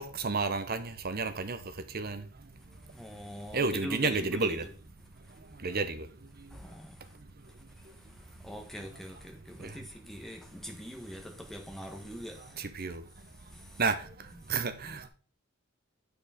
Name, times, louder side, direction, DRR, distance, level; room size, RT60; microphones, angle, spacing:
voice 1, 0.0-1.6 1.9-2.2 3.5-4.6 5.6-6.1 12.6-13.0 13.8-13.9 14.5-15.1, right 4 dB, 45° right, 0.8 m, -31 dB
voice 2, 2.9-4.6 6.5-7.0 8.4-12.6 13.5-13.8, equal, ahead, 1.3 m, -42 dB
8.6 x 4.9 x 5.0 m
head